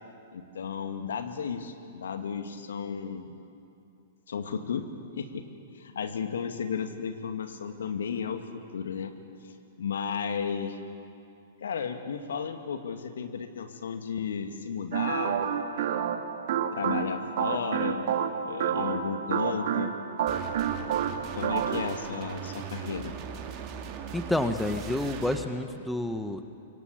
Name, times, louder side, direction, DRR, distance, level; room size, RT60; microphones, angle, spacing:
voice 1, 0.3-3.3 4.3-4.8 5.2-5.5 5.7-9.1 9.4-10.8 11.6-15.4 15.7-16.1 16.7-18.1 18.4-19.9 21.3-23.1, left 6 dB, 65° left, 6 dB, 2.3 m, -34 dB
sound 1, 14.9-22.0, right 8 dB, 55° right, 2.0 m, -29 dB
sound 2, 20.3-25.5, right 7 dB, 35° right, 2.8 m, -39 dB
voice 2, 24.1-26.4, left 1 dB, 5° left, 8 dB, 1.4 m, -29 dB
27.0 x 23.0 x 8.8 m, 2.6 s
figure-of-eight pair, 110°, 0 cm